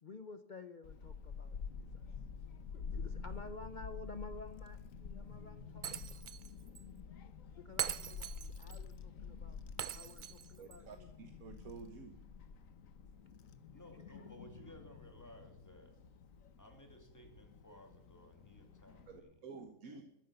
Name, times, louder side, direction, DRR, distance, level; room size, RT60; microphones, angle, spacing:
voice 1, 0.0-2.1 2.7-6.1 7.6-9.6 9.9-11.1, left 3 dB, 40° left, 10 dB, 0.7 m, -52 dB
Child speech kid speaking / Wind, 0.8-19.2, left 5 dB, 70° left, 1.4 m, -49 dB
Shatter, 5.8-6.5 6.7-6.8 7.8-8.8 9.8-10.8, right 10 dB, 60° right, 0.5 m, -41 dB
voice 2, 10.6-12.1 19.1-20.0, right 5 dB, 80° right, 6 dB, 1.6 m, -51 dB
voice 3, 13.7-16.0 16.6-20.0, equal, 10° left, 4 dB, 2.5 m, -58 dB
14.0 x 10.0 x 6.8 m, 0.81 s
omnidirectional pair, 1.5 m